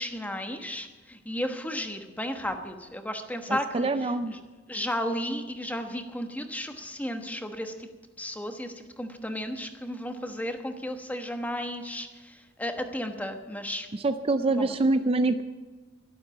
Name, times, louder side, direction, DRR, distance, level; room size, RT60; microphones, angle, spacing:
voice 1, 0.0-4.4 4.7-7.9 8.2-13.9 14.5-14.8, equal, 10° left, 6 dB, 1.1 m, -34 dB
voice 2, 3.7-4.3 14.0-15.4, right 2 dB, 30° right, 10 dB, 0.5 m, -24 dB
12.0 x 12.0 x 7.3 m, 1.4 s
head